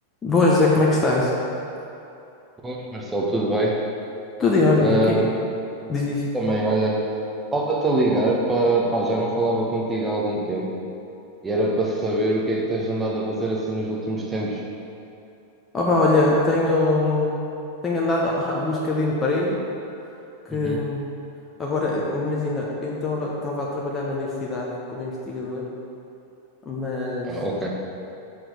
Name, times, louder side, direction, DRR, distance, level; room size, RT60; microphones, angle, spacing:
voice 1, 0.2-1.3 4.4-5.2 5.9-6.3 15.7-17.4 17.8-19.6 20.4-21.0 21.6-25.7 26.6-27.3, left 2 dB, 20° left, -4 dB, 1.0 m, -22 dB
voice 2, 2.6-3.8 4.8-5.3 6.3-7.0 7.5-10.8 11.4-14.6 20.5-20.8 27.2-27.7, right 1 dB, 15° right, -2 dB, 1.2 m, -23 dB
6.3 x 6.1 x 5.0 m, 2.8 s
figure-of-eight pair, 90°, 0 cm